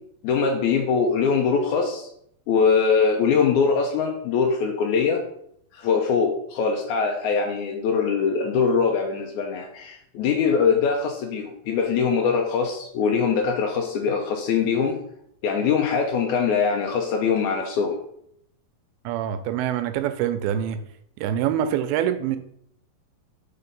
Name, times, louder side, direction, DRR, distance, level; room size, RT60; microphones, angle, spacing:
voice 1, 0.2-2.1 2.5-5.2 5.7-15.0 15.4-18.0, left 5 dB, 85° left, 2 dB, 1.7 m, -22 dB
voice 2, 19.1-20.8 21.2-22.4, right 10 dB, 85° right, 10 dB, 2.4 m, -25 dB
5.6 x 4.2 x 5.2 m, 0.71 s
omnidirectional pair, 4.3 m